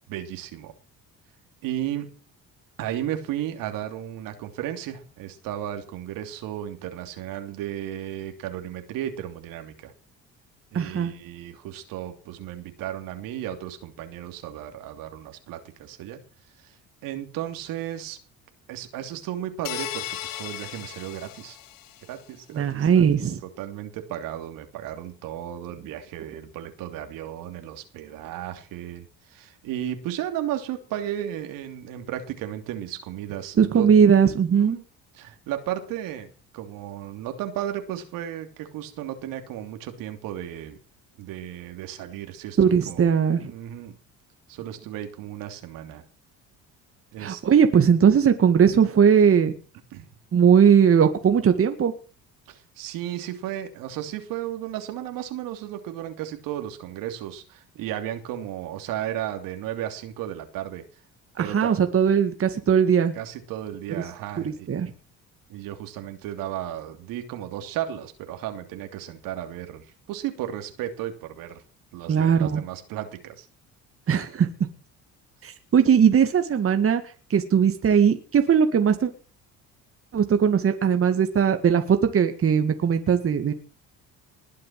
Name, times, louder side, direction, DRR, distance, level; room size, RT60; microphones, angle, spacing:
voice 1, 0.1-0.7 1.6-2.1 2.8-9.9 10.7-16.2 16.6-16.7 17.0-18.2 18.7-21.6 22.1-23.3 23.6-33.9 34.5-34.8 35.1-40.8 41.2-43.1 43.5-44.0 44.5-46.0 47.1-47.4 49.9-50.1 52.5-60.8 61.4-61.7 63.1-64.7 65.5-71.6 71.9-73.5, right 11 dB, 80° right, 6 dB, 3.1 m, -34 dB
voice 2, 10.7-11.1 22.5-23.4 33.6-34.8 42.6-43.5 47.2-49.5 50.3-51.9 61.4-63.1 63.9-64.0 64.4-64.9 72.1-72.6 74.1-74.5 75.4-77.0 77.3-79.1 80.1-83.5, right 7 dB, 40° right, 7 dB, 2.1 m, -19 dB
sound 1, 19.6-22.1, left 14 dB, 80° left, 1.7 m, -36 dB
20.5 x 7.6 x 7.7 m, 0.39 s
cardioid pair, 95°, 33 cm